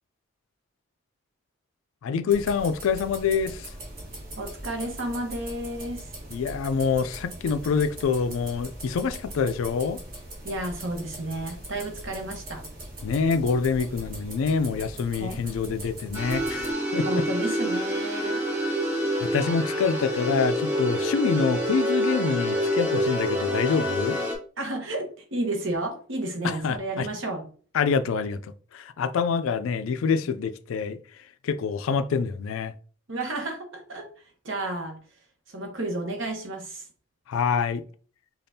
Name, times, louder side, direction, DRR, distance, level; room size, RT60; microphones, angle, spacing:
voice 1, 2.0-3.7 6.3-10.0 13.0-17.3 19.2-24.2 26.4-27.1 27.7-31.0 31.4-32.7 37.3-37.8, left 5 dB, 70° left, 0.3 m, -26 dB
sound 1, 2.3-16.7, right 1 dB, 40° right, 1.3 m, -41 dB
voice 2, 4.4-6.0 10.4-12.6 15.2-15.4 17.0-18.4 24.6-27.4 33.1-34.1 34.4-35.0 35.5-36.8, right 1 dB, 60° right, 1.0 m, -32 dB
sound 2, 16.1-24.3, equal, 10° right, 0.8 m, -27 dB
5.2 x 2.4 x 2.7 m
head